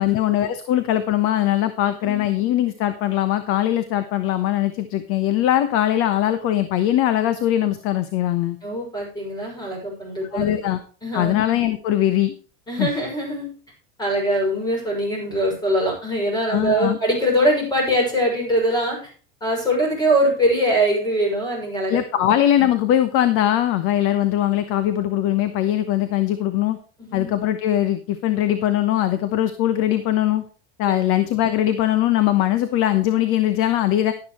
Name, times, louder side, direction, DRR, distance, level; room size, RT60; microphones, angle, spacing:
voice 1, 0.0-8.6 10.3-10.8 11.1-12.3 12.8-12.9 16.5-17.0 21.9-26.8 27.1-30.4 30.8-34.1, left 12 dB, 45° left, 11 dB, 1.1 m, -21 dB
voice 2, 8.6-10.5 11.0-11.4 12.7-13.5 14.0-19.1 19.4-22.3 27.0-27.3, equal, 15° left, 0 dB, 5.9 m, -22 dB
12.0 x 11.0 x 3.1 m, 0.39 s
cardioid pair, 165°, 31 cm